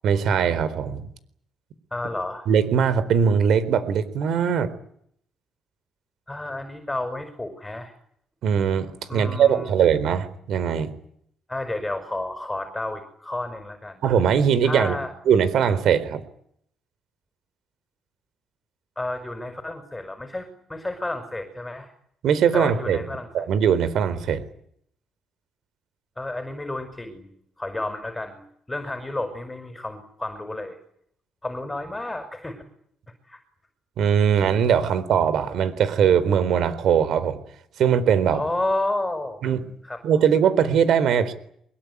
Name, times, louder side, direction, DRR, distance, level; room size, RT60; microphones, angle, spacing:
voice 1, 0.0-1.1 2.5-4.7 8.4-10.9 14.0-15.0 15.3-16.2 22.2-23.0 23.3-24.4 34.0-37.4 37.8-38.4 39.4-39.6 40.0-41.3, right 7 dB, 75° right, 15 dB, 4.1 m, -20 dB
voice 2, 1.9-2.5 6.3-7.9 9.1-9.7 11.5-14.0 14.6-15.1 19.0-21.9 22.5-23.6 26.2-27.3 27.6-28.4 28.7-30.8 31.4-32.6 33.3-33.4 38.3-39.4 39.8-40.0, left 2 dB, 15° left, 8 dB, 5.8 m, -31 dB
24.0 x 22.5 x 9.8 m, 0.67 s
cardioid pair, 90°, 0 cm